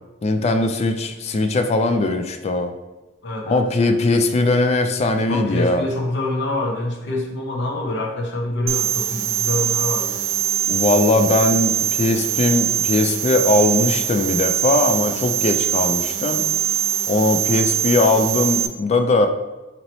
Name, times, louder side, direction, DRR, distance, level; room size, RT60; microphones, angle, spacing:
voice 1, 0.2-2.7 3.5-5.9 10.7-16.4 17.1-19.3, left 2 dB, 35° left, 7 dB, 0.3 m, -19 dB
voice 2, 3.2-3.6 5.2-10.2 11.2-11.4, left 2 dB, 65° left, 0 dB, 0.8 m, -26 dB
sound 1, 8.7-18.7, right 10 dB, 75° right, 0.3 m, -22 dB
3.0 x 2.9 x 4.1 m, 1.1 s
head